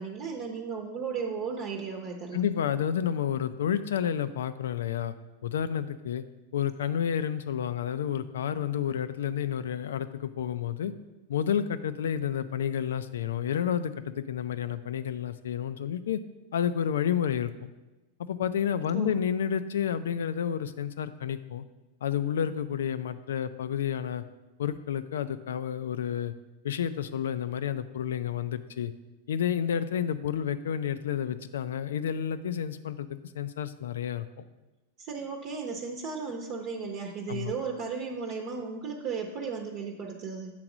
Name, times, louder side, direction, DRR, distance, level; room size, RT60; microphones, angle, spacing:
voice 1, 0.0-2.4 18.9-19.2 35.0-40.5, right 5 dB, 40° right, 2 dB, 0.8 m, -35 dB
voice 2, 2.3-5.1 5.4-6.2 6.5-10.9 11.3-16.2 16.5-17.7 18.2-21.6 22.0-24.2 24.6-26.3 26.6-28.9 29.3-33.1 33.3-34.3 37.3-37.5, left 8 dB, 85° left, 12 dB, 0.5 m, -30 dB
7.5 x 3.9 x 6.0 m, 1.1 s
supercardioid pair, 135°, 0 cm